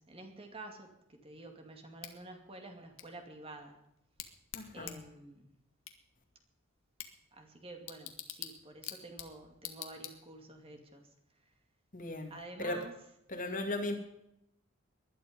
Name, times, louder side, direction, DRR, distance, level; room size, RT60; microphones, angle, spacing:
voice 1, 0.0-3.8 4.7-5.5 7.3-11.5 12.3-12.9 13.3-13.4, right 2 dB, 25° right, 4 dB, 2.4 m, -50 dB
Bicycle / Tick, 2.0-10.6, left 11 dB, 65° left, 2.0 m, -49 dB
voice 2, 4.5-5.0 11.9-12.3 12.6-12.8 13.3-13.9, left 2 dB, 40° left, 4 dB, 2.4 m, -36 dB
20.0 x 12.0 x 5.3 m, 0.81 s
head